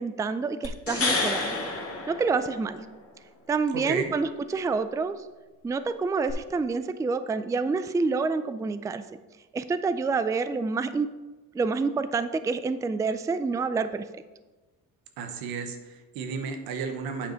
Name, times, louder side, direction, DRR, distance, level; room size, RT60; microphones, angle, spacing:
voice 1, 0.0-1.6 2.1-2.8 3.5-5.2 5.6-9.2 9.5-11.1 11.5-14.0, right 4 dB, 10° right, 12 dB, 0.3 m, -28 dB
sound 1, 0.6-2.9 6.3-6.4, left 3 dB, 40° left, 2.0 m, -29 dB
voice 2, 3.7-4.1 15.2-17.3, right 5 dB, 85° right, 7 dB, 1.1 m, -33 dB
8.8 x 5.2 x 4.4 m, 1.2 s
cardioid pair, 85°, 36 cm